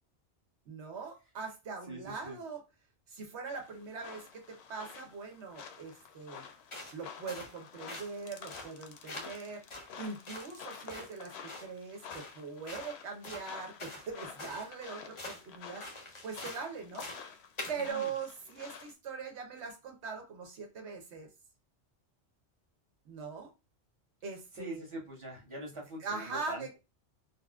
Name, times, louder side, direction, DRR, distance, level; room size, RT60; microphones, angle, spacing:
voice 1, 0.7-2.6 3.1-6.4 6.9-9.7 10.0-17.1 17.7-21.3 23.1-23.5 24.2-24.8 26.0-26.8, right 5 dB, 80° right, 3 dB, 1.1 m, -41 dB
voice 2, 1.9-2.4 17.9-18.1 24.5-26.8, right 1 dB, 30° right, -3 dB, 1.0 m, -44 dB
sound 1, 3.5-18.9, left 7 dB, 75° left, 0.8 m, -50 dB
sound 2, 6.7-7.0 7.3-7.5 7.9-8.1 8.5-8.7 9.1-9.4 9.7-10.5 10.9-11.1 11.5-11.7 12.1-12.4 12.7-12.9 13.2-14.1 14.4-14.7 15.2-15.4 15.8-16.6 16.9-17.3 17.6-17.9, left 2 dB, 35° left, 0.6 m, -44 dB
4.1 x 2.0 x 2.3 m, 0.27 s
omnidirectional pair, 1.1 m